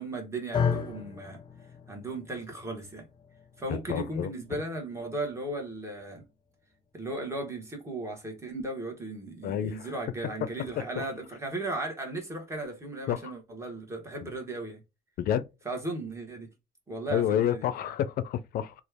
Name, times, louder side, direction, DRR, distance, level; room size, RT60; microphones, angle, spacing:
voice 1, 0.0-1.4 1.9-3.1 3.6-6.2 6.9-14.8 15.6-16.5 16.9-17.7, right 2 dB, 15° right, 1.3 m, -36 dB
sound 1, 0.5-8.8, left 6 dB, 25° left, 0.7 m, -37 dB
voice 2, 3.7-4.3 9.4-9.9 10.8-11.0 13.1-13.3 14.2-14.3 15.2-15.5 17.1-18.7, left 10 dB, 60° left, 0.5 m, -29 dB
3.0 x 2.4 x 3.4 m
cardioid pair, 110°, 17 cm